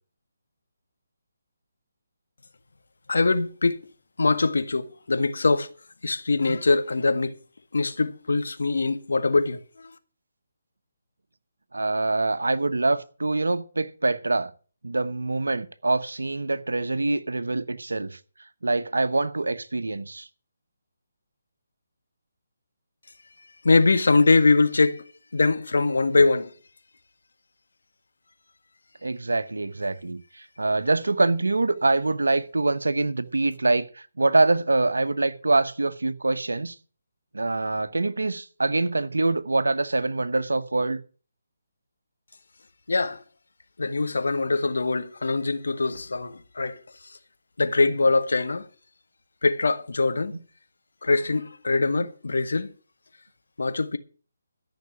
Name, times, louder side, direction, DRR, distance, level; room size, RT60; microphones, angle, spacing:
voice 1, 3.1-3.8 4.2-5.7 6.0-7.3 7.7-9.9 23.6-25.0 25.3-26.5 42.9-43.2 43.8-47.2 47.6-48.7 49.4-50.3 51.0-52.7 53.6-54.0, left 3 dB, 75° left, 1.7 m, -23 dB
voice 2, 11.7-14.5 14.8-18.2 18.6-20.3 29.0-36.7 37.3-41.0, right 2 dB, 85° right, 1.1 m, -25 dB
13.5 x 6.0 x 8.5 m
figure-of-eight pair, 155°, 0 cm